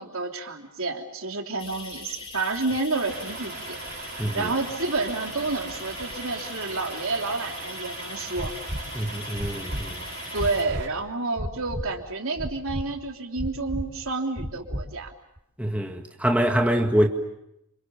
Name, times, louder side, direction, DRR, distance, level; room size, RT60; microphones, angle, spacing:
voice 1, 0.0-3.8 4.3-8.5 10.3-15.1 16.7-16.8, right 3 dB, 70° right, 3.4 m, -29 dB
sound 1, 1.6-10.6, left 4 dB, 25° left, 3.1 m, -41 dB
Truck, 3.1-10.9, right 4 dB, 50° right, 4.5 m, -40 dB
voice 2, 4.2-4.5 8.9-10.0 15.6-17.1, equal, 5° right, 1.8 m, -24 dB
sound 2, 8.4-8.8 9.4-9.8 10.4-10.8 11.4-11.8 12.4-12.8 13.4-13.8 14.4-14.8 15.4-15.5, equal, 30° right, 4.7 m, -31 dB
29.0 x 28.0 x 7.0 m
head